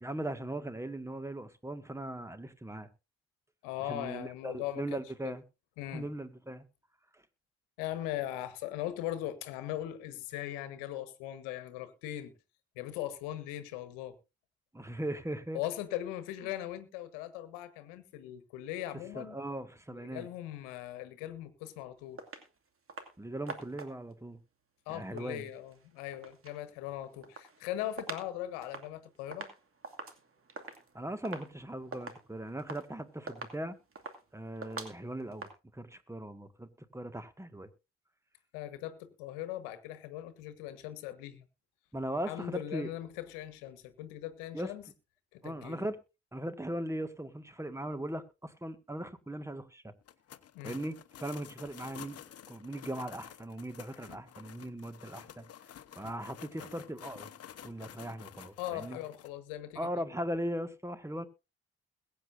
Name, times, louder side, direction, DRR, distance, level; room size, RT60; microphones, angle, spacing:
voice 1, 0.0-2.9 3.8-5.4 5.9-6.7 14.7-15.6 19.1-20.3 23.2-24.4 24.9-25.5 30.9-33.8 34.3-37.7 41.9-42.9 44.5-44.7 45.4-46.0 46.3-49.9 50.6-52.2 52.5-55.5 56.0-57.3 57.6-59.0 59.8-61.3, right 1 dB, 10° right, 1.8 m, -39 dB
voice 2, 3.6-5.3 5.8-6.1 7.8-12.3 12.8-14.2 15.5-19.4 19.9-22.2 24.9-29.5 38.5-41.4 42.3-44.8 45.3-45.9 50.5-50.8 58.6-59.9, left 13 dB, 80° left, 1.4 m, -39 dB
sound 1, 22.2-22.5 22.9-23.2 23.5-24.1 25.0-26.6 27.0-28.3 28.6-35.5, right 4 dB, 45° right, 2.4 m, -45 dB
sound 2, 50.0-59.3, left 10 dB, 50° left, 1.0 m, -51 dB
21.5 x 8.8 x 2.6 m
hypercardioid pair, 40°, 31 cm